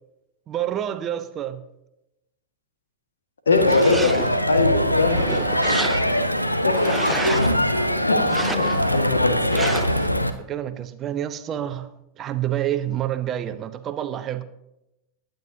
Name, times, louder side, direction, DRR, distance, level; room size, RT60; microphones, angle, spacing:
voice 1, 0.5-1.6 4.7-5.5 6.7-7.1 7.6-8.0 10.5-11.9 12.2-14.4, right 11 dB, 30° right, 11 dB, 0.9 m, -29 dB
voice 2, 3.4-4.2 4.5-5.2 6.6-7.2 7.9-9.6, left 3 dB, 70° left, 6 dB, 1.8 m, -22 dB
Crowd, 3.5-10.3, equal, 90° left, 0.9 m, -22 dB
sound 1, 3.5-4.5 5.0-6.3 6.7-7.6 8.2-9.0 9.5-10.1, right 3 dB, 10° right, 0.5 m, -31 dB
21.5 x 9.4 x 2.8 m, 0.87 s
figure-of-eight pair, 90°, 0 cm